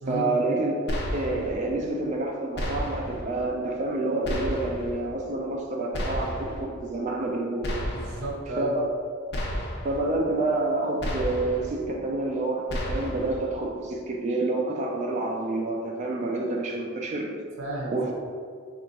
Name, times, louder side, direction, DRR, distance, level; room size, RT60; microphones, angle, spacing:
voice 1, 0.1-0.7 1.1-7.7 8.6-8.9 9.8-17.3 17.9-18.1, right 2 dB, 35° right, 0 dB, 0.4 m, -28 dB
sound 1, 0.9-1.6 2.5-3.2 4.2-4.9 5.9-6.6 7.6-8.3 9.3-10.0 11.0-11.7 12.7-13.4, equal, 55° left, 0.6 m, -31 dB
voice 2, 7.9-8.7 17.6-18.1, right 1 dB, 75° right, -1 dB, 0.7 m, -33 dB
3.6 x 2.4 x 4.0 m, 2.1 s
head